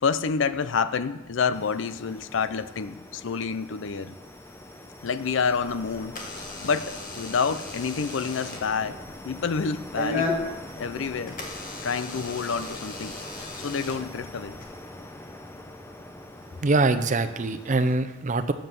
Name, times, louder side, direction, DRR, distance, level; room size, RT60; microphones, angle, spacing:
voice 1, 0.0-4.1 5.0-6.2 6.6-10.3 10.8-11.4 11.8-13.1 13.6-14.6, left 5 dB, 70° left, 13 dB, 0.5 m, -28 dB
sound 1, 1.5-18.0, left 1 dB, 15° left, 0.6 m, -44 dB
Door / Alarm, 5.4-14.6, left 3 dB, 45° left, 1.7 m, -36 dB
voice 2, 16.6-18.5, right 3 dB, 40° right, 9 dB, 0.6 m, -23 dB
7.7 x 7.6 x 6.7 m, 1.0 s
head